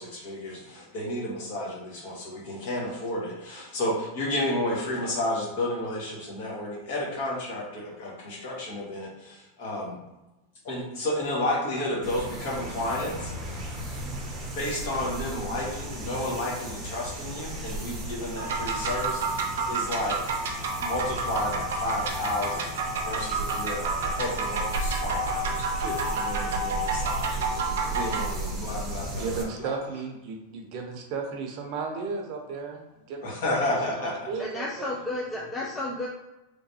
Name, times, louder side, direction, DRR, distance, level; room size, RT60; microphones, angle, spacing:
voice 1, 0.0-10.0 10.6-13.3 14.5-20.2 20.8-22.7 23.0-29.8 33.2-34.3, left 1 dB, 60° left, -4 dB, 1.4 m, -32 dB
sound 1, 12.0-29.4, right 1 dB, 15° right, 0.8 m, -35 dB
sound 2, 18.4-28.3, right 3 dB, 85° right, 0.7 m, -30 dB
voice 2, 29.0-34.9, right 4 dB, 45° right, 2 dB, 0.7 m, -35 dB
voice 3, 34.4-36.1, left 2 dB, 15° left, -2 dB, 0.4 m, -32 dB
3.3 x 3.0 x 2.7 m, 0.97 s
supercardioid pair, 155°, 0 cm